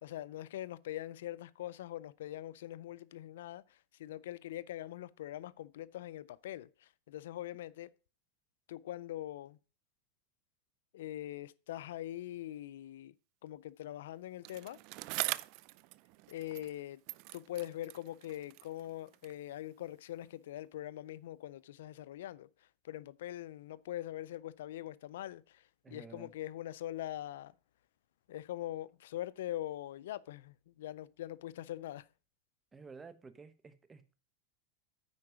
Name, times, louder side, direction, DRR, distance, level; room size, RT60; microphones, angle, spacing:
voice 1, 0.0-7.9 8.7-9.6 10.9-13.1 13.4-14.8 16.3-17.0 17.3-22.5 22.8-27.5 28.3-32.1, left 13 dB, 80° left, 0.4 m, -43 dB
Bicycle, 14.4-16.8 17.1-19.5 20.2-20.3, right 22 dB, 55° right, 0.4 m, -42 dB
voice 2, 25.8-26.3 32.7-34.1, right 4 dB, 20° right, 1.0 m, -52 dB
9.5 x 4.6 x 6.1 m
supercardioid pair, 125°, 0 cm